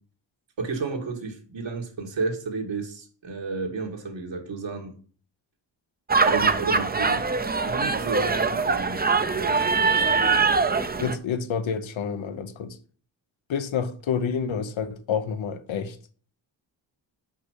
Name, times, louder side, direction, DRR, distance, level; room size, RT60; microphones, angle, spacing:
voice 1, 0.6-4.9 6.3-7.3 7.7-9.0 9.3-10.2, right 4 dB, 70° right, 2.1 m, -32 dB
sound 1, 6.1-11.2, right 4 dB, 20° right, 0.6 m, -23 dB
voice 2, 11.0-12.8 13.5-16.0, left 6 dB, 80° left, 1.0 m, -28 dB
5.7 x 5.4 x 6.3 m
cardioid pair, 85°, 45 cm